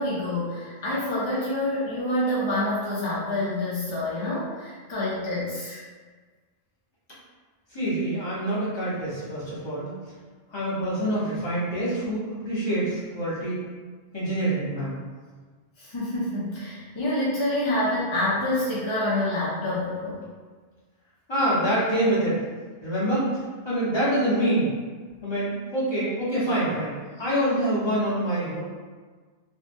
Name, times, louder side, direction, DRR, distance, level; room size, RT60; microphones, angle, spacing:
voice 1, 0.0-5.8 15.8-20.2, left 1 dB, 50° left, -8 dB, 0.3 m, -27 dB
voice 2, 7.7-9.9 10.5-13.6 14.1-15.0 21.3-22.4 22.8-23.3 23.6-24.7 25.2-28.6, right 1 dB, 30° left, -10 dB, 0.9 m, -26 dB
2.7 x 2.1 x 2.5 m, 1.5 s
omnidirectional pair, 1.1 m